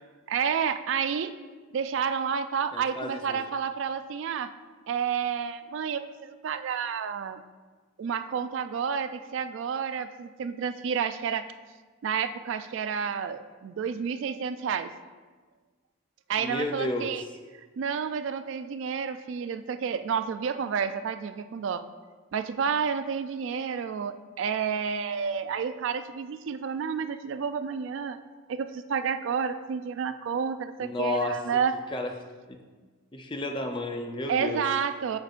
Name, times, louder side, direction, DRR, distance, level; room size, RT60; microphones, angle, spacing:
voice 1, 0.3-1.3 1.7-4.5 4.9-7.4 8.0-11.5 12.0-14.9 16.3-17.2 17.8-21.8 22.3-28.2 28.5-31.7 34.3-35.2, right 6 dB, 70° right, 10 dB, 0.3 m, -30 dB
voice 2, 2.7-3.5 16.4-17.1 30.8-31.4 31.9-32.1 32.5-32.6 33.1-34.6, left 2 dB, 25° left, 4 dB, 0.4 m, -32 dB
7.8 x 6.6 x 2.5 m, 1.4 s
head